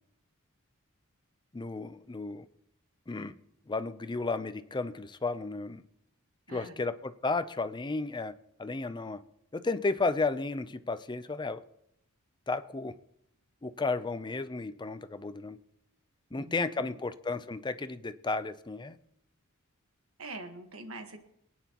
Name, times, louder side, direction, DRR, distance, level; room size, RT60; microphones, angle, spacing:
voice 1, 1.5-2.5 3.1-3.3 3.7-5.8 6.5-8.3 8.6-9.2 9.5-11.6 12.5-12.9 13.6-15.6 16.3-19.0, left 3 dB, 20° left, 0.5 m, -33 dB
voice 2, 6.5-6.8 16.3-16.9 20.2-21.2, right 2 dB, 70° right, 1.5 m, -44 dB
24.0 x 9.2 x 3.0 m
head